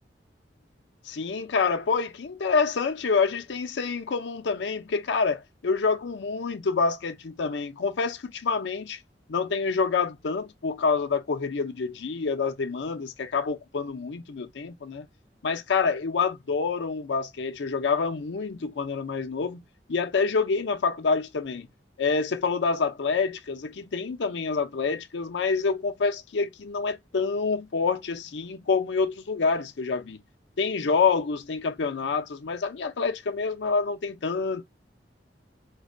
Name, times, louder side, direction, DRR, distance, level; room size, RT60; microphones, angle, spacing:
voice 1, 1.0-9.0 9.3-15.1 15.4-19.6 19.9-21.7 22.0-30.2 30.6-34.6, left 4 dB, 80° left, 0.5 m, -27 dB
3.9 x 2.1 x 2.5 m
head